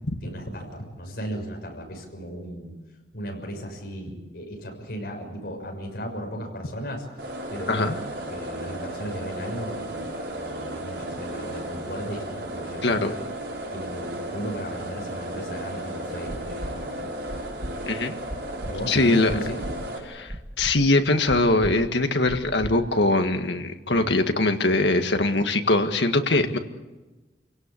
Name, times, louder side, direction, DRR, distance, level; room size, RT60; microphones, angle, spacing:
voice 1, 0.0-2.7 3.1-7.1 7.5-8.0 8.3-13.2 13.7-17.2 18.6-19.6 23.9-24.1 26.4-26.5, equal, 65° left, 1 dB, 6.5 m, -36 dB
sound 1, 7.2-20.0, right 1 dB, 70° right, 5.4 m, -34 dB
voice 2, 12.8-13.1 17.9-18.1 18.9-19.5 20.1-26.6, left 2 dB, 85° left, 6 dB, 1.8 m, -22 dB
sound 2, 16.3-16.7 17.3-17.7 18.3-18.7 19.3-19.7 20.3-20.7 21.3-21.7 22.3-22.7 23.3-23.4, equal, 35° right, 1.9 m, -35 dB
28.5 x 17.5 x 8.5 m, 1.2 s
head